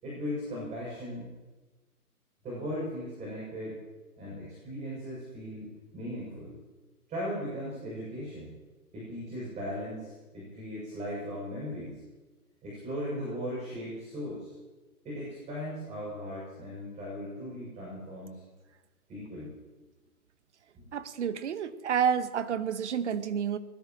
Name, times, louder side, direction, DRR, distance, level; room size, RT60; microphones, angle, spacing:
voice 1, 0.0-1.3 2.4-3.8 4.2-6.6 7.1-8.5 8.9-12.0 12.6-14.5 15.0-18.4 19.1-19.5 20.7-20.9, equal, 15° right, -6 dB, 7.2 m, -38 dB
voice 2, 20.9-23.6, right 7 dB, 50° right, 12 dB, 1.0 m, -29 dB
23.0 x 20.5 x 3.1 m, 1.2 s
hypercardioid pair, 145°, 46 cm